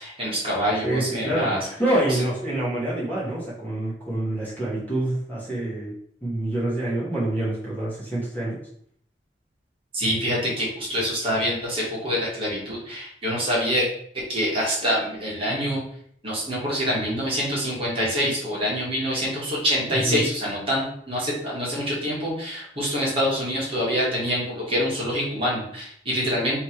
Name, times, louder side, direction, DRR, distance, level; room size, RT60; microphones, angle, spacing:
voice 1, 0.0-1.6 9.9-13.9 14.3-15.8 16.2-26.6, equal, 35° right, -6 dB, 1.6 m, -25 dB
voice 2, 0.8-5.9 6.2-8.6 19.9-20.2, right 1 dB, 10° left, -8 dB, 1.5 m, -26 dB
3.3 x 3.2 x 4.4 m, 0.65 s
head